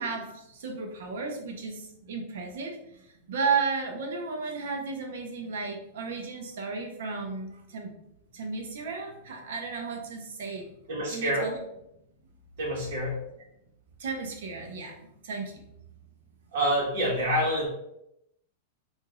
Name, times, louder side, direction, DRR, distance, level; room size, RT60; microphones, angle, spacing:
voice 1, 0.0-8.0 8.3-10.7 11.1-11.6 14.0-15.6, right 4 dB, 70° right, 2 dB, 0.9 m, -34 dB
voice 2, 10.9-11.5 12.6-13.2 16.5-17.7, equal, 50° right, -5 dB, 1.4 m, -27 dB
4.8 x 2.7 x 2.5 m, 0.79 s
supercardioid pair, 170°, 0 cm